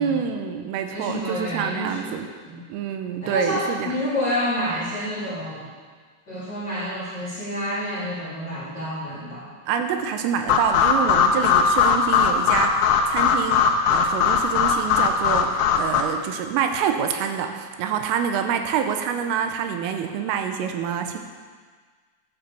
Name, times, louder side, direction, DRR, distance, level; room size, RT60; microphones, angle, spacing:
voice 1, 0.0-2.3 2.7-4.0 9.7-13.7 13.9-21.2, right 7 dB, 80° right, 5 dB, 3.5 m, -26 dB
voice 2, 0.8-2.2 2.4-2.6 3.2-5.7 6.3-9.5, equal, 25° left, -7 dB, 2.8 m, -29 dB
sound 1, 10.5-16.0, left 6 dB, 85° left, 3.7 m, -20 dB
12.0 x 9.6 x 7.0 m, 1.5 s
omnidirectional pair, 5.9 m